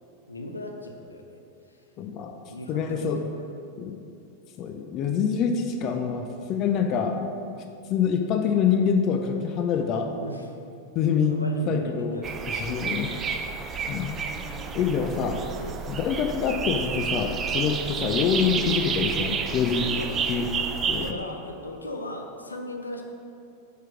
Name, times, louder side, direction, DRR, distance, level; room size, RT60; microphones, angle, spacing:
voice 1, 0.3-1.4 1.7-1.8 2.3-3.3 10.1-10.6 11.3-12.5 14.5-14.8 15.6-15.8 20.0-20.3 21.0-23.0, left 1 dB, 80° left, 3 dB, 0.6 m, -38 dB
voice 2, 2.0-2.3 2.7-3.2 3.8-4.0 4.6-7.2 7.9-10.1 10.9-12.2 12.5-13.1 13.9-14.2 14.7-15.4 15.9-19.9 20.3-20.5 20.9-21.1, left 6 dB, 35° left, 5 dB, 0.4 m, -25 dB
sound 1, 12.2-21.1, right 6 dB, 25° right, 0.4 m, -30 dB
5.0 x 4.6 x 5.9 m, 2.5 s
figure-of-eight pair, 90°, 0 cm